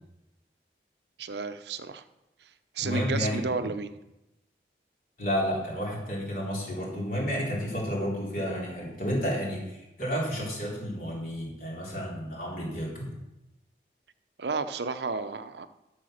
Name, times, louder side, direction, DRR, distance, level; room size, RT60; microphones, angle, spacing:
voice 1, 1.2-2.0 2.7-3.9 14.4-15.7, right 4 dB, 75° right, 11 dB, 0.7 m, -32 dB
voice 2, 2.8-3.7 5.2-13.1, equal, 50° left, -3 dB, 3.8 m, -31 dB
12.0 x 6.8 x 6.5 m, 0.93 s
head